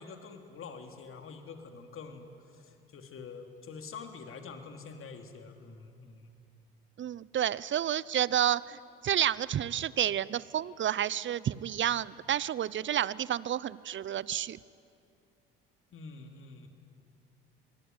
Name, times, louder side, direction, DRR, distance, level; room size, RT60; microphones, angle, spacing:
voice 1, 0.0-6.3 15.9-16.7, left 5 dB, 45° left, 5 dB, 3.4 m, -46 dB
voice 2, 7.0-14.6, right 10 dB, 40° right, 21 dB, 0.8 m, -30 dB
27.0 x 21.0 x 9.7 m, 2.5 s
hypercardioid pair, 60°, 29 cm